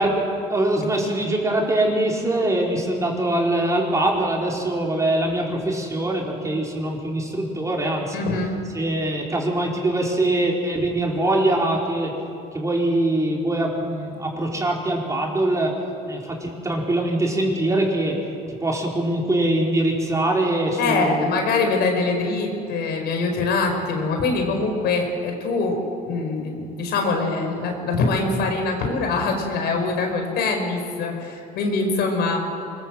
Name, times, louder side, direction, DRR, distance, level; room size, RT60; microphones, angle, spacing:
voice 1, 0.0-8.2 8.7-12.1 12.5-15.8 16.1-18.2 18.6-21.3, right 1 dB, 20° right, -1 dB, 4.7 m, -23 dB
voice 2, 8.1-8.5 20.8-25.8 26.1-32.4, left 3 dB, 75° left, 3 dB, 5.1 m, -23 dB
25.0 x 21.5 x 7.7 m, 2.6 s
cardioid pair, 110°, 17 cm